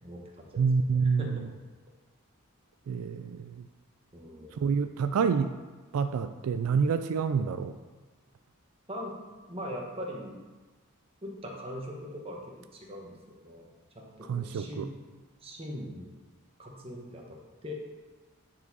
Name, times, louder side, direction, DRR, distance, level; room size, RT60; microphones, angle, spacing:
voice 1, 0.0-0.7 1.0-1.4 4.1-4.6 8.9-9.1 9.5-10.4 11.2-13.7 13.9-14.9 15.4-16.1 16.6-17.7, equal, 25° right, -1 dB, 1.1 m, -41 dB
voice 2, 0.6-1.5 2.9-3.7 4.5-5.6 5.9-7.8 14.3-14.9, right 5 dB, 80° right, 9 dB, 0.3 m, -28 dB
9.5 x 4.7 x 4.0 m, 1.3 s
head